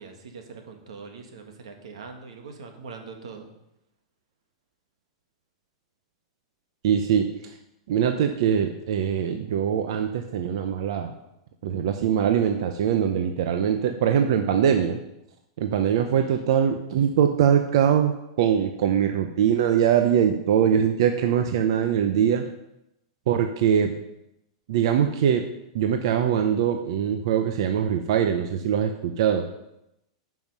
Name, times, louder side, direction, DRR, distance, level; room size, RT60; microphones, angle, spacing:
voice 1, 0.0-3.5 15.9-16.5, right 5 dB, 90° right, 4 dB, 1.7 m, -42 dB
voice 2, 6.8-7.6 7.9-11.1 11.6-15.0 15.6-22.5 23.3-24.0 24.7-25.5 25.7-29.5, right 8 dB, 55° right, 6 dB, 0.7 m, -22 dB
9.3 x 5.7 x 5.5 m, 0.85 s
supercardioid pair, 170°, 3 cm